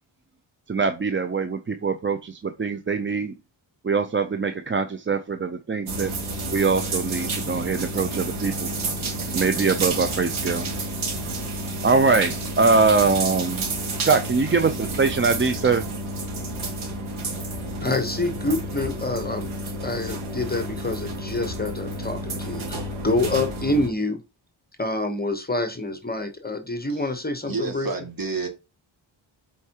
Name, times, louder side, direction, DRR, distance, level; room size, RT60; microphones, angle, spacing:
voice 1, 0.7-3.3 3.8-6.1 6.5-8.7 9.3-10.7 11.8-13.7 14.0-15.8, right 4 dB, 25° right, 0.5 m, -23 dB
sound 1, 5.9-23.9, right 2 dB, 85° right, 2.1 m, -30 dB
voice 2, 17.8-19.5 19.8-24.2 24.8-27.9, left 2 dB, 20° left, 1.0 m, -27 dB
voice 3, 26.9-28.5, right 4 dB, 45° right, 2.3 m, -31 dB
8.2 x 4.5 x 2.9 m
wide cardioid pair, 105°, 47 cm